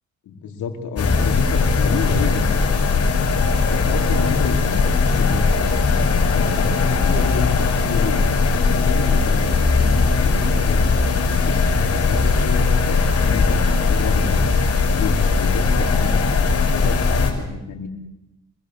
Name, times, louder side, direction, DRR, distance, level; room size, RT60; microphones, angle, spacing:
voice 1, 0.2-3.0 3.7-5.5 5.9-8.2 8.5-11.6 11.9-14.4 14.9-17.9, left 5 dB, 75° left, 4 dB, 4.7 m, -29 dB
sound 1, 1.0-17.3, left 4 dB, 50° left, 5.7 m, -19 dB
27.0 x 21.0 x 8.4 m, 0.92 s
cardioid pair, 90°, 30 cm